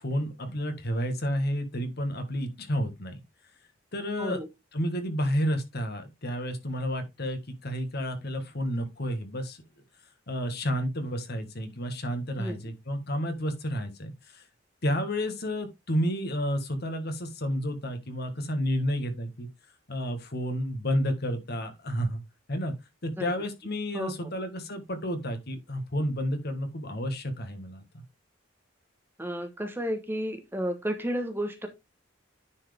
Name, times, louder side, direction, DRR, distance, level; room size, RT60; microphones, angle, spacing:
voice 1, 0.0-3.2 3.9-4.4 4.7-9.6 10.3-14.4 14.8-19.5 19.9-22.2 22.5-22.7 23.0-28.0, equal, 55° left, 1.7 m, -31 dB
voice 2, 23.9-24.3 29.2-31.7, equal, 10° right, 1.1 m, -32 dB
10.0 x 4.6 x 3.5 m
head